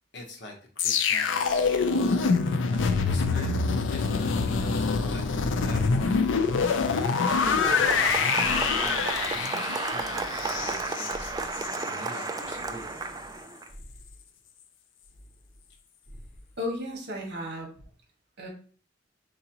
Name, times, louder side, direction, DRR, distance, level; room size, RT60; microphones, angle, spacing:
voice 1, 0.1-2.4 2.7-6.1 6.4-12.9, left 1 dB, 65° left, 2 dB, 1.1 m, -43 dB
sound 1, 0.8-11.9 12.2-12.4, left 5 dB, 85° left, 0.5 m, -25 dB
sound 2, 1.4-3.9 4.3-6.8 7.3-9.4 9.9-11.8 12.4-13.4 13.7-14.2 15.0-15.8 16.1-16.5, equal, 10° left, 2.0 m, -46 dB
Applause, 6.7-13.7, right 4 dB, 20° right, 0.4 m, -33 dB
voice 2, 16.6-17.7 18.4-18.5, left 1 dB, 60° right, 0 dB, 1.7 m, -34 dB
4.7 x 3.8 x 2.9 m, 0.43 s
head